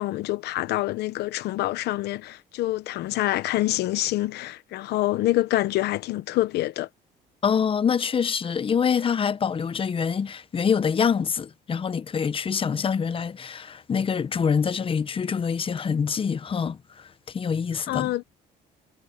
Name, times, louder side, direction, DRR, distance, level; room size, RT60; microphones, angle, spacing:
voice 1, 0.0-6.9 17.9-18.2, left 16 dB, 75° left, 1.0 m, -26 dB
voice 2, 7.4-16.8 17.3-18.1, left 6 dB, 30° left, 0.9 m, -25 dB
cardioid pair, 110°, 17 cm